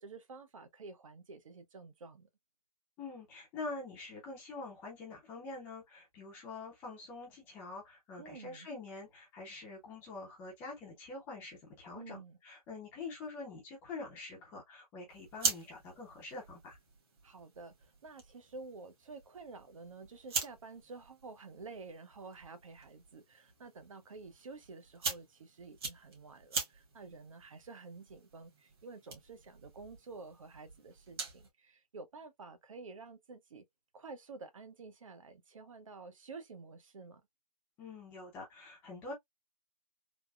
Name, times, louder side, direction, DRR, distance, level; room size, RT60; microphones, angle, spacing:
voice 1, 0.0-2.3 8.2-8.7 11.9-12.4 17.2-33.6 33.9-37.2, right 3 dB, 55° right, 0.8 m, -50 dB
voice 2, 3.0-12.2 12.4-16.8 37.8-39.1, left 3 dB, 10° left, 0.6 m, -45 dB
sound 1, 15.1-31.5, right 4 dB, 40° right, 1.3 m, -43 dB
3.4 x 2.1 x 2.3 m
hypercardioid pair, 160°, 20 cm